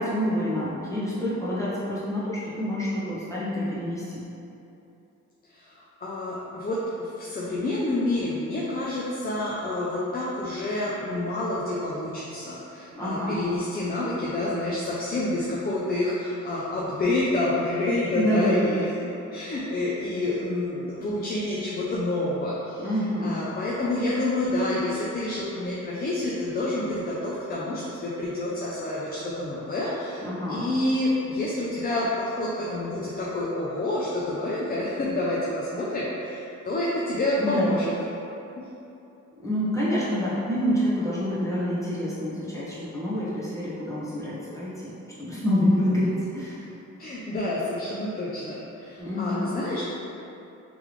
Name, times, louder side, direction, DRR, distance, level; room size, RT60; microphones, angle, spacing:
voice 1, 0.0-4.2 12.9-13.4 18.1-18.7 22.8-23.4 30.2-30.7 37.4-37.7 39.3-44.9 45.2-46.6 49.0-49.6, equal, 10° left, -9 dB, 1.3 m, -27 dB
voice 2, 5.5-18.9 19.3-22.9 23.2-30.2 30.5-37.9 47.0-49.8, left 1 dB, 30° left, -6 dB, 0.6 m, -28 dB
3.5 x 3.4 x 3.2 m, 2.9 s
cardioid pair, 90°, 30 cm